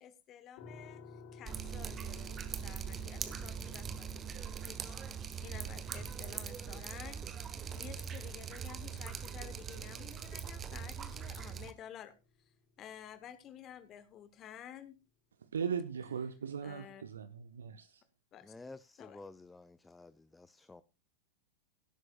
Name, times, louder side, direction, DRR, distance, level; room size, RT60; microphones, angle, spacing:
voice 1, 0.0-2.3 2.6-4.1 4.6-5.0 5.4-12.1 12.8-15.0 16.6-17.0 18.3-18.5 19.0-19.2, left 10 dB, 30° left, 1.2 m, -52 dB
sound 1, 0.6-13.4, left 5 dB, 50° left, 6.6 m, -58 dB
Drip, 1.4-11.7, right 7 dB, 25° right, 1.4 m, -42 dB
voice 2, 15.5-18.0, right 7 dB, 70° right, 0.8 m, -38 dB
voice 3, 18.4-20.8, left 3 dB, 10° left, 0.6 m, -52 dB
17.0 x 12.5 x 2.4 m
figure-of-eight pair, 90°, 0 cm